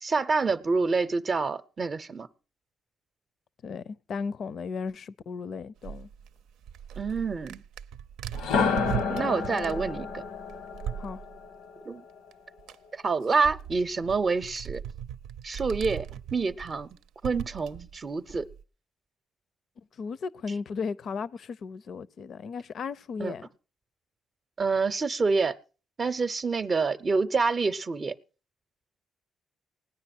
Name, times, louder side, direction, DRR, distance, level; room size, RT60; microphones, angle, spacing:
voice 1, 0.0-2.3 7.0-7.6 9.1-10.2 11.8-12.0 12.9-14.8 15.4-16.1 16.3-16.9 17.2-18.5 23.2-23.3 24.6-25.6 26.0-28.1, right 4 dB, 35° right, 0.7 m, -27 dB
voice 2, 3.6-6.1 11.0-11.2 19.8-23.4, left 5 dB, 60° left, 0.6 m, -35 dB
sound 1, 5.8-11.4 12.3-12.4 12.6-18.6, right 9 dB, 90° right, 0.6 m, -39 dB
sound 2, 8.3-12.3, left 5 dB, 90° left, 1.2 m, -30 dB
18.0 x 9.8 x 6.0 m
cardioid pair, 90°, 0 cm